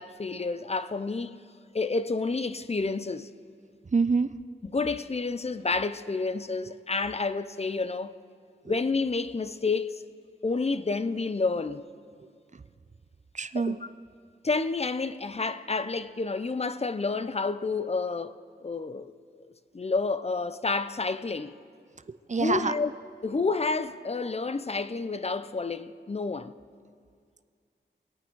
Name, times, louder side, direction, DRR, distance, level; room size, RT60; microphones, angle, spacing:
voice 1, 0.0-1.4 1.7-3.3 4.7-8.1 8.7-10.0 10.4-11.9 13.7-13.8 14.4-19.4 19.7-21.6 22.4-22.9 23.2-26.5, left 3 dB, 30° left, 0.6 m, -29 dB
voice 2, 3.8-4.3 8.6-8.8 12.5-12.6 13.3-13.8 22.1-22.7, right 4 dB, 40° right, 0.6 m, -27 dB
24.5 x 8.9 x 4.7 m
cardioid pair, 55°, 20 cm